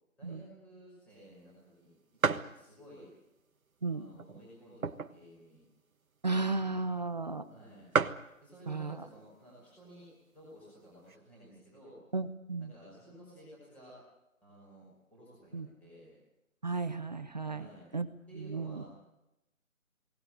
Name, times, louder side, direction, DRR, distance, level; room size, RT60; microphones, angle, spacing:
voice 1, 0.2-3.1 3.9-5.6 7.5-7.9 8.4-12.0 12.6-13.9 14.4-16.1 17.5-17.9 18.3-18.9, right 1 dB, 5° left, -7 dB, 5.6 m, -54 dB
sound 1, 1.2-1.3 1.7-1.8 2.2-2.6 3.2-3.3 4.1-5.3 5.7-5.8 5.9-6.2 6.9-7.0 7.3-7.4 7.6-7.7 7.9-8.3 9.2-9.5 10.1-10.2 10.4-11.2, right 5 dB, 75° right, 1.5 m, -32 dB
voice 2, 6.2-7.5 8.7-9.0 12.1-12.7 15.5-15.7 16.6-17.7 17.9-18.1 18.4-18.8, right 3 dB, 30° right, 10 dB, 1.0 m, -34 dB
21.5 x 19.0 x 9.2 m, 0.90 s
figure-of-eight pair, 170°, 42 cm